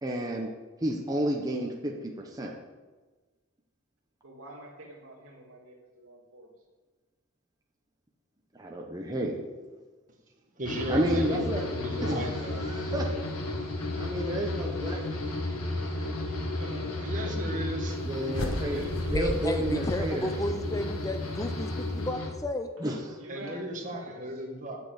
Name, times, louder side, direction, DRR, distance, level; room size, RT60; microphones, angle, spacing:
voice 1, 0.0-0.5 0.8-2.5 8.5-9.4 10.9-11.7 12.0-13.1 14.0-15.1 16.0-16.6 16.9-17.1 18.0-20.4 22.8-23.2, right 1 dB, 15° right, 0 dB, 0.9 m, -31 dB
voice 2, 4.2-6.5 16.5-17.9 18.6-19.3 23.2-24.4, right 1 dB, 75° right, -1 dB, 2.3 m, -47 dB
sound 1, 10.6-22.3, left 2 dB, 85° left, 1.9 m, -33 dB
voice 3, 10.6-12.7 17.0-18.0 23.3-24.8, equal, 35° right, 1 dB, 1.6 m, -36 dB
sound 2, 18.3-20.7, left 1 dB, 65° left, 1.3 m, -35 dB
voice 4, 19.1-22.7, left 1 dB, 15° left, 8 dB, 0.5 m, -33 dB
8.2 x 6.7 x 7.8 m, 1.3 s
head